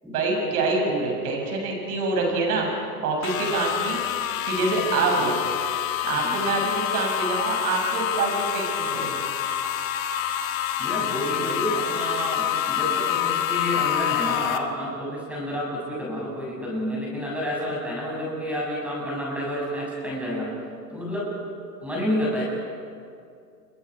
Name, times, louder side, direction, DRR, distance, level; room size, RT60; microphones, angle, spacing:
voice 1, 0.1-2.7 3.0-4.0 4.4-5.3 6.0-9.2, right 3 dB, 60° right, 0 dB, 7.4 m, -25 dB
sound 1, 3.2-14.6, left 10 dB, 50° left, 1.7 m, -27 dB
voice 2, 6.1-6.4 10.8-20.5 20.9-21.3 21.8-22.4, equal, 5° right, -4 dB, 7.2 m, -29 dB
28.5 x 22.5 x 4.9 m, 2.4 s
hypercardioid pair, 145°, 50 cm